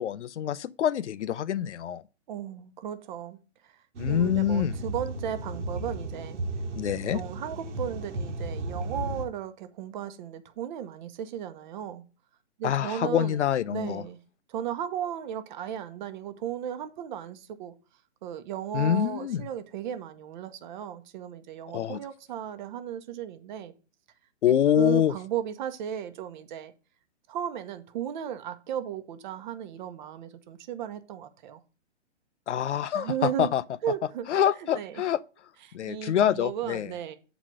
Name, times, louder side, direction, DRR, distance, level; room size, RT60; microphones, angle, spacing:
voice 1, 0.0-2.0 4.0-4.7 6.8-7.2 12.6-14.0 18.7-19.4 21.7-22.0 24.4-25.1 32.5-33.1 33.4-33.6 34.3-35.2 35.7-36.9, left 10 dB, 75° left, 0.6 m, -25 dB
voice 2, 2.3-3.8 4.1-6.4 7.1-12.0 12.6-13.4 13.7-14.2 14.5-17.7 18.2-23.7 24.8-26.7 27.3-31.6 32.9-33.5 33.8-34.3 34.6-35.0 35.6-37.2, right 9 dB, 40° right, 1.0 m, -35 dB
sound 1, 4.0-9.3, right 2 dB, 75° right, 1.4 m, -34 dB
7.8 x 4.1 x 6.2 m
hypercardioid pair, 135°, 36 cm